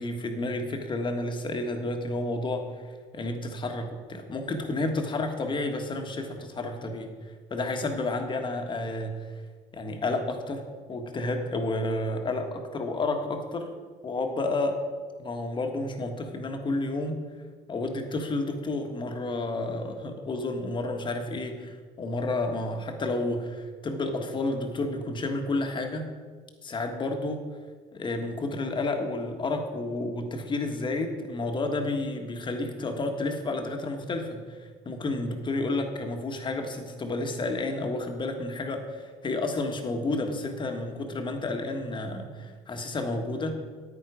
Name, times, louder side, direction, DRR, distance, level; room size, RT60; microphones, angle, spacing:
voice 1, 0.0-9.4 9.7-13.7 14.0-14.8 15.2-17.2 17.7-26.1 26.6-27.5 27.9-43.6, left 2 dB, 30° left, 4 dB, 1.5 m, -31 dB
9.7 x 9.2 x 5.0 m, 1.5 s
cardioid pair, 105°, 16 cm